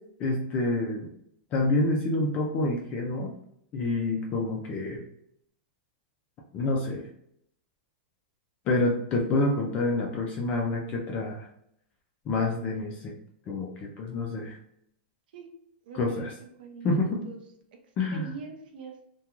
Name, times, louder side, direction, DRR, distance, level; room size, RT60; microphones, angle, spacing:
voice 1, 0.2-1.1 1.5-3.3 3.7-5.0 6.5-7.0 8.7-11.5 12.3-13.1 13.5-14.6 15.9-16.3 16.8-17.2 18.0-18.3, left 2 dB, 20° left, 0 dB, 0.3 m, -27 dB
voice 2, 15.8-17.0 17.2-17.4 18.1-19.0, right 5 dB, 60° right, 3 dB, 0.6 m, -43 dB
2.4 x 2.2 x 2.9 m, 0.72 s
supercardioid pair, 170°, 6 cm